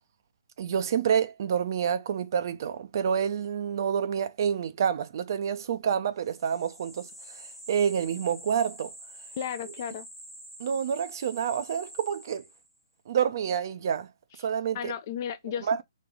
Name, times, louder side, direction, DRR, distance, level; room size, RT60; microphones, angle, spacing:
voice 1, 0.6-8.9 10.6-12.4 13.1-14.1 14.4-14.9 15.7-15.8, right 8 dB, 45° right, 0.5 m, -28 dB
sound 1, 6.2-12.8, right 1 dB, 5° left, 1.0 m, -47 dB
voice 2, 9.4-10.1 14.7-15.8, left 9 dB, 40° left, 0.4 m, -34 dB
3.1 x 2.9 x 3.5 m
figure-of-eight pair, 140°, 3 cm